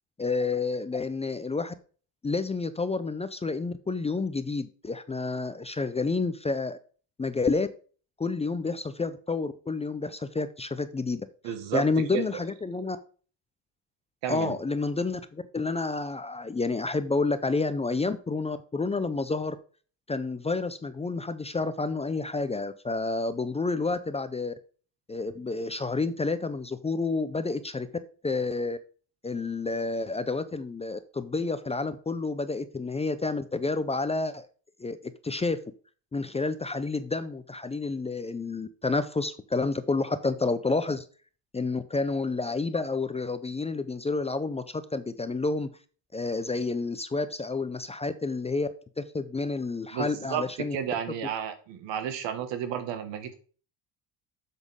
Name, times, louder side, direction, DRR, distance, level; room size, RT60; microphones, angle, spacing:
voice 1, 0.2-1.7 2.2-6.8 7.2-7.7 8.2-13.0 14.3-19.6 20.1-24.5 25.1-27.9 28.2-28.8 29.2-34.5 34.8-35.6 36.1-41.0 41.5-45.7 46.1-48.7 49.0-50.8, left 3 dB, 15° left, 12 dB, 0.5 m, -29 dB
voice 2, 11.4-11.8 12.1-12.4 14.2-14.5 49.9-50.4 50.7-53.3, right 9 dB, 85° right, 8 dB, 1.8 m, -32 dB
7.8 x 7.3 x 3.7 m, 0.39 s
cardioid pair, 130°, 43 cm